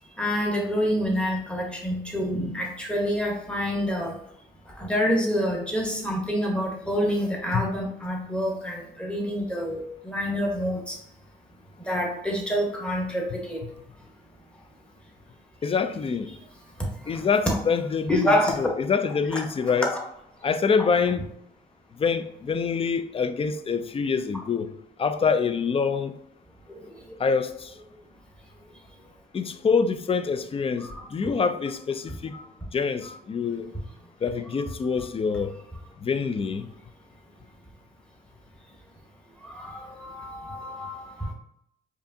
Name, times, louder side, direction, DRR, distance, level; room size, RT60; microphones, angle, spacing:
voice 1, 0.2-4.1 4.8-11.0 11.9-13.6 17.1-17.2 17.5-17.6 18.1-18.5 19.9-20.0 26.7-26.8 30.8-31.0 32.3-32.4 39.4-41.3, equal, 5° left, 1.1 m, -27 dB
voice 2, 15.6-16.3 17.1-19.9 20.4-21.3 22.0-24.7 25.0-26.1 27.2-27.7 29.3-33.7 34.2-35.5 36.0-36.7, left 5 dB, 30° left, 0.4 m, -26 dB
4.8 x 2.6 x 2.7 m
cardioid pair, 90°, 20 cm